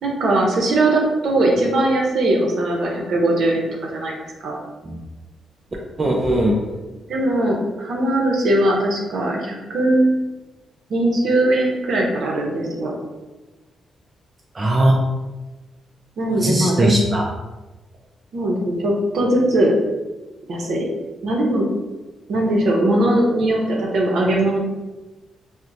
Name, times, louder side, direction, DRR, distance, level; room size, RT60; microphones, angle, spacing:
voice 1, 0.0-3.7 3.9-4.6 7.1-10.1 10.9-12.9 16.2-17.1 18.3-19.7 20.5-20.9 21.2-21.7 22.3-24.6, right 1 dB, 60° right, -1 dB, 0.7 m, -20 dB
voice 2, 6.0-6.6 14.5-15.0 16.3-17.2, right 1 dB, 25° right, -1 dB, 0.4 m, -19 dB
4.3 x 2.1 x 2.6 m, 1.1 s
cardioid pair, 140°, 0 cm